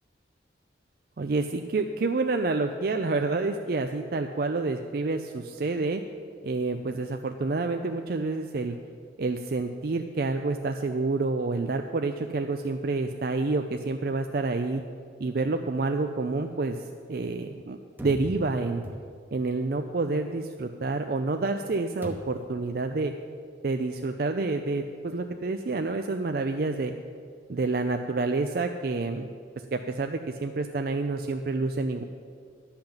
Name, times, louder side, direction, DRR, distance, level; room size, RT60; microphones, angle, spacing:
voice 1, 1.2-6.0 6.4-8.8 9.2-14.8 15.2-16.8 17.1-18.8 19.3-23.1 23.6-26.9 27.5-29.3 29.7-32.0, right 3 dB, 50° right, 6 dB, 0.4 m, -28 dB
sound 1, 18.0-19.5 22.0-22.6, equal, 10° right, 0.8 m, -40 dB
12.0 x 5.8 x 8.7 m, 2.2 s
head